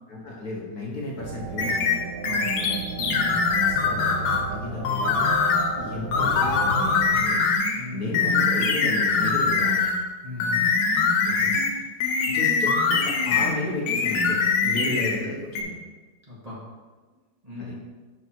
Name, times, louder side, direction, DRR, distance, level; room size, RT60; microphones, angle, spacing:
voice 1, 0.1-2.0 3.6-5.3 5.7-9.9 11.2-11.8 12.3-15.8 17.6-17.7, left 2 dB, 50° left, -4 dB, 1.8 m, -33 dB
sound 1, 1.2-7.1, right 5 dB, 70° right, 1.4 m, -35 dB
sound 2, 1.6-4.5 4.8-5.7 6.1-7.8 8.1-10.0 10.4-13.6 13.9-15.2 15.5-15.6, left 5 dB, 90° left, 1.7 m, -23 dB
voice 2, 2.2-3.5 7.7-8.3 10.2-10.7 14.7-15.1 16.3-16.6 17.4-17.7, left 3 dB, 20° right, -8 dB, 1.8 m, -37 dB
6.7 x 5.6 x 4.6 m, 1.3 s
omnidirectional pair, 2.1 m